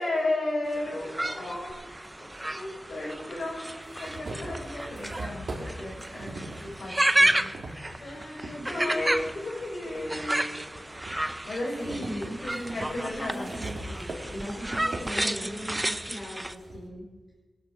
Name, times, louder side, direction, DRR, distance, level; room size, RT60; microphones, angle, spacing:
voice 1, 0.0-1.8 2.2-9.2 9.7-10.6 11.4-12.2 12.7-13.5 15.2-15.6, left 2 dB, 80° left, -2 dB, 4.7 m, -34 dB
sound 1, 0.7-16.5, right 1 dB, 15° right, 0.6 m, -31 dB
sound 2, 1.7-1.8 2.9-3.0 3.4-8.6 9.1-10.3 10.7-16.9, right 2 dB, 75° right, 3.1 m, -41 dB
voice 2, 7.9-9.1 9.4-9.9 10.7-10.9 11.6-17.0, equal, 55° left, -2 dB, 4.3 m, -38 dB
24.5 x 10.5 x 5.0 m, 1.2 s
wide cardioid pair, 100°, 0 cm